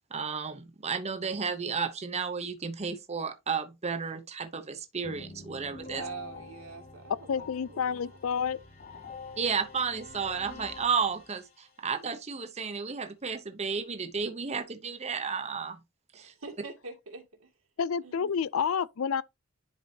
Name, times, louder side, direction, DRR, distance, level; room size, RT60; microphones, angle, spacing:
voice 1, 0.1-6.0 9.4-15.8 16.1-16.3, right 5 dB, 30° right, 0.8 m, -32 dB
sound 1, 5.0-11.8, left 3 dB, 45° left, 4.1 m, -47 dB
voice 2, 6.0-8.2 16.1-17.5 18.0-18.4, right 4 dB, 85° right, 2.3 m, -45 dB
voice 3, 7.3-8.6 17.8-19.2, left 6 dB, 75° left, 0.4 m, -29 dB
10.5 x 4.6 x 2.8 m
head